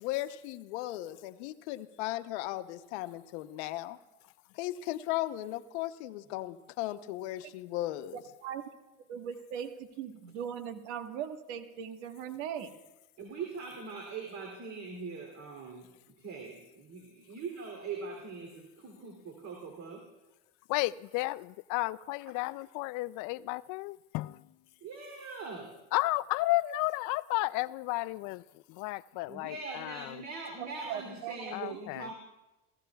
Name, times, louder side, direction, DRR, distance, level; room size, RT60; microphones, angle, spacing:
voice 1, 0.0-4.0 4.6-8.2, left 15 dB, 80° left, 0.9 m, -36 dB
voice 2, 9.1-12.7 30.6-31.5, right 8 dB, 80° right, 1.5 m, -39 dB
voice 3, 13.2-20.0 24.8-25.8 29.3-32.1, right 4 dB, 55° right, 3.0 m, -42 dB
voice 4, 20.7-24.5 25.9-30.2 31.5-32.1, left 19 dB, 65° left, 0.5 m, -33 dB
29.5 x 16.5 x 2.3 m
supercardioid pair, 95°, 34 cm